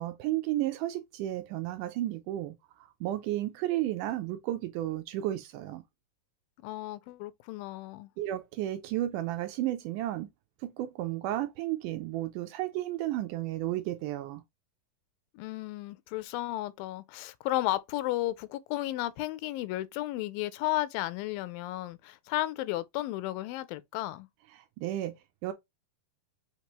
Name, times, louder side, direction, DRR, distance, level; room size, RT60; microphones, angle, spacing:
voice 1, 0.0-5.8 8.2-10.3 10.6-14.4 24.5-25.5, right 14 dB, 80° right, 1.9 m, -33 dB
voice 2, 6.6-8.1 15.3-24.3, left 16 dB, 85° left, 2.3 m, -33 dB
5.9 x 3.1 x 2.9 m
omnidirectional pair, 4.0 m